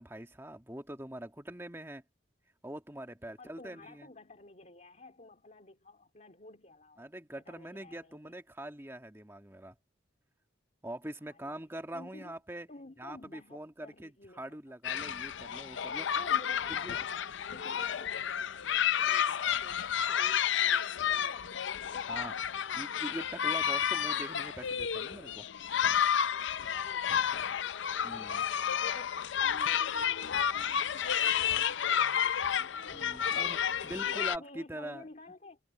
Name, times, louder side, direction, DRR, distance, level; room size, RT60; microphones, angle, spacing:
voice 1, 0.0-2.0 2.6-4.1 7.0-9.8 10.8-12.7 13.0-16.2 16.7-17.0 22.1-22.3 22.7-25.5 28.0-28.5 32.9-35.1, right 1 dB, 10° right, 1.8 m, -43 dB
voice 2, 3.4-7.1 7.4-8.3 11.3-11.5 11.9-12.4 12.7-14.6 16.1-23.1 26.5-27.6 28.6-35.6, left 2 dB, 40° left, 2.7 m, -53 dB
sound 1, 14.8-34.4, left 8 dB, 65° left, 0.5 m, -31 dB
head